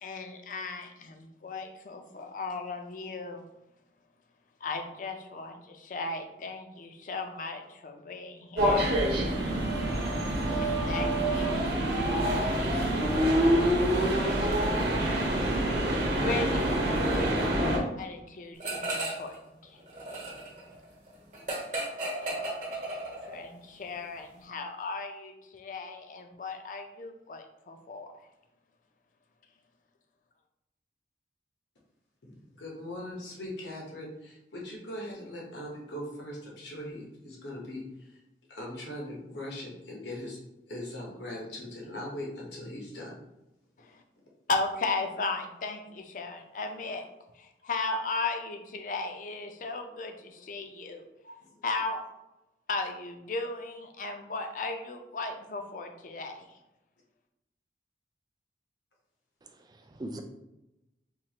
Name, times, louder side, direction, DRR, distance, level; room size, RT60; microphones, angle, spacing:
voice 1, 0.0-3.4 4.6-9.0 10.6-12.6 14.2-14.5 16.1-16.8 17.1-17.6 18.0-19.3 23.3-28.1 44.5-47.0 47.6-51.0 51.6-52.0 52.7-56.4, left 3 dB, 45° left, 0.4 m, -36 dB
sound 1, 8.6-17.8, right 1 dB, 70° right, 0.9 m, -26 dB
sound 2, 18.6-19.3 19.6-23.5, right 2 dB, 45° right, 1.0 m, -35 dB
voice 2, 32.6-38.2 38.5-40.4 40.7-43.2 46.8-46.9 51.2-51.5, left 1 dB, 85° left, 1.0 m, -40 dB
voice 3, 59.4-60.2, right 1 dB, 25° right, 0.3 m, -41 dB
4.5 x 2.4 x 2.9 m
head